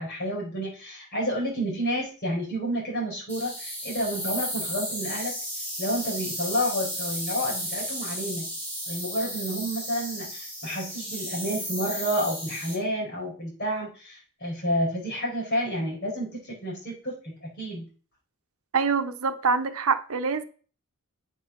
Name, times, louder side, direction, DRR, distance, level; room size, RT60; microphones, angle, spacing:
voice 1, 0.0-5.4 5.8-8.5 8.9-17.9, equal, 45° left, 5.0 m, -30 dB
sound 1, 3.3-12.8, equal, 10° left, 3.2 m, -34 dB
voice 2, 18.7-20.4, right 5 dB, 75° right, 0.9 m, -25 dB
8.3 x 5.6 x 5.9 m
head